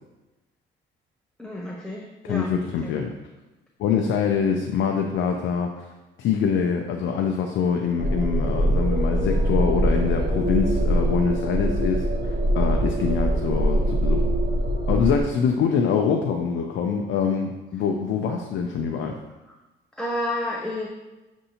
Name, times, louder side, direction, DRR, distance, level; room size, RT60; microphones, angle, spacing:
voice 1, 1.4-2.5 2.8-2.9 20.0-20.9, left 1 dB, 5° left, -2 dB, 0.5 m, -30 dB
voice 2, 2.2-3.1 3.8-5.9 6.2-14.2 14.9-19.2, left 6 dB, 75° left, 3 dB, 0.4 m, -24 dB
sound 1, 8.0-15.2, right 1 dB, 50° right, 0.7 m, -23 dB
6.4 x 2.6 x 2.8 m, 1.1 s
cardioid pair, 90°, 20 cm